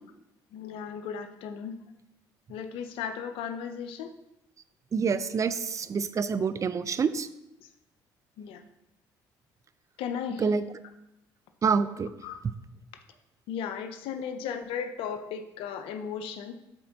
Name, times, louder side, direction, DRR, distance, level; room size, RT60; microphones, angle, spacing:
voice 1, 0.5-1.7 2.5-4.1 7.6-7.7 8.4-8.6 10.0-10.5 12.2-12.4 13.5-16.5, left 7 dB, 75° left, 8 dB, 0.5 m, -36 dB
voice 2, 4.9-7.3 10.4-10.6 11.6-12.1, right 5 dB, 35° right, 13 dB, 0.4 m, -27 dB
10.5 x 4.3 x 2.8 m, 0.87 s
supercardioid pair, 70°, 9 cm